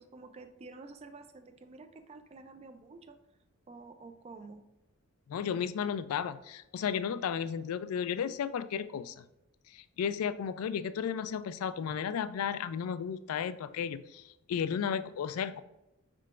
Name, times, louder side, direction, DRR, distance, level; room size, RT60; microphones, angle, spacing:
voice 1, 0.0-3.2 3.7-4.6, right 3 dB, 30° right, 8 dB, 0.3 m, -50 dB
voice 2, 5.3-9.2 9.7-14.2 14.5-15.6, left 7 dB, 75° left, 14 dB, 0.3 m, -34 dB
5.5 x 3.7 x 2.4 m, 0.90 s
head